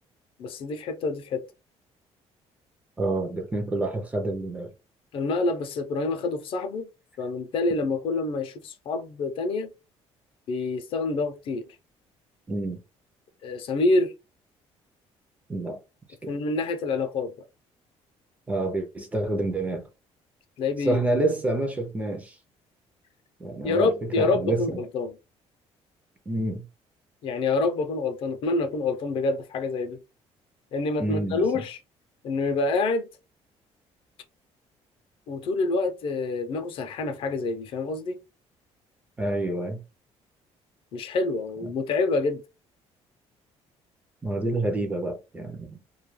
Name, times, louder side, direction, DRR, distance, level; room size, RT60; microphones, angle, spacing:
voice 1, 0.4-1.4 5.1-6.9 7.2-9.7 10.5-11.7 13.4-14.1 16.3-17.3 20.6-21.0 23.6-25.1 27.2-30.0 30.7-31.8 32.2-33.0 35.3-38.2 40.9-42.4, left 3 dB, 50° left, 0.5 m, -27 dB
voice 2, 3.0-4.7 12.5-12.8 15.5-15.8 16.2-16.3 18.5-19.8 20.8-22.4 23.4-24.8 26.3-26.7 31.0-31.5 39.2-39.8 41.6-41.7 44.2-45.8, right 2 dB, 15° right, 0.4 m, -28 dB
2.2 x 2.2 x 3.0 m
cardioid pair, 180°, 11 cm